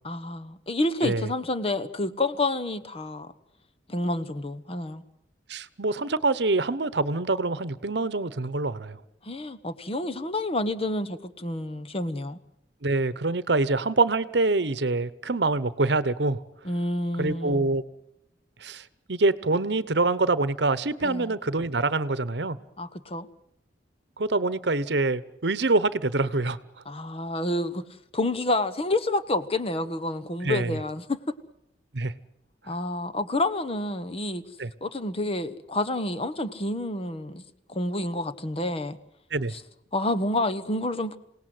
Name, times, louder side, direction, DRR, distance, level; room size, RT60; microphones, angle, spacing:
voice 1, 0.0-3.3 3.9-5.0 9.2-12.4 16.6-17.6 21.0-21.3 22.8-23.3 26.9-27.8 28.1-31.2 32.7-34.4 34.8-37.4 37.7-39.0 39.5-39.6 39.9-41.2, left 2 dB, 30° left, 1.1 m, -29 dB
voice 2, 1.0-1.3 5.5-9.0 12.8-16.4 17.2-17.8 18.6-22.6 24.2-26.6 30.4-30.8 31.9-32.1 34.6-34.7 39.3-39.5, right 3 dB, 65° right, 1.0 m, -25 dB
27.5 x 18.0 x 7.8 m
head